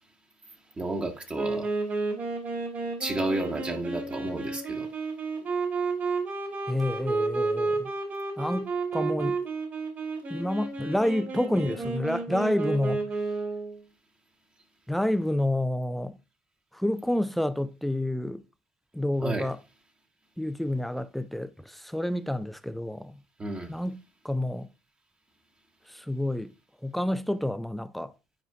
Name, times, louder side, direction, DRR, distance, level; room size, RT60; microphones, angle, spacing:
voice 1, 0.8-1.7 3.0-4.9 19.2-19.5 23.4-23.7, right 2 dB, 25° right, 1.2 m, -31 dB
Wind instrument woodwind instrument, 1.3-13.8, right 3 dB, 45° right, 2.2 m, -31 dB
voice 2, 6.7-7.9 8.4-9.4 10.3-13.1 14.9-16.2 16.7-18.4 18.9-19.6 20.4-23.2 23.7-24.7 25.9-26.5 26.8-28.1, left 1 dB, ahead, 0.4 m, -29 dB
9.3 x 4.4 x 2.3 m
supercardioid pair, 85°, 5 cm